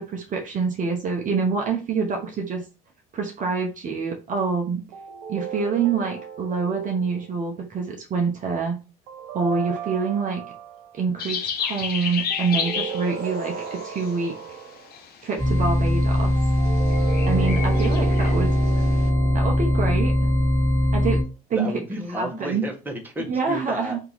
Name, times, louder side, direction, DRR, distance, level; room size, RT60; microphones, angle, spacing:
voice 1, 0.0-2.6 3.1-4.8 5.3-8.8 9.3-10.4 10.9-14.4 15.2-16.3 17.3-18.5 19.3-20.1 20.9-21.2 21.5-21.7 22.2-22.6 23.3-24.0, right 5 dB, 40° right, 2 dB, 0.8 m, -26 dB
sound 1, 4.9-7.4 9.1-10.9 12.3-15.0 16.4-20.9, right 7 dB, 70° right, 0.8 m, -35 dB
sound 2, 11.2-14.4 14.8-15.3 15.6-16.0 16.2-19.1, left 7 dB, 50° left, 0.8 m, -32 dB
sound 3, 15.4-21.2, equal, 10° left, 1.6 m, -21 dB
voice 2, 21.5-24.0, right 1 dB, 10° right, 1 dB, 1.2 m, -31 dB
2.8 x 2.7 x 3.9 m, 0.32 s
supercardioid pair, 80°, 20 cm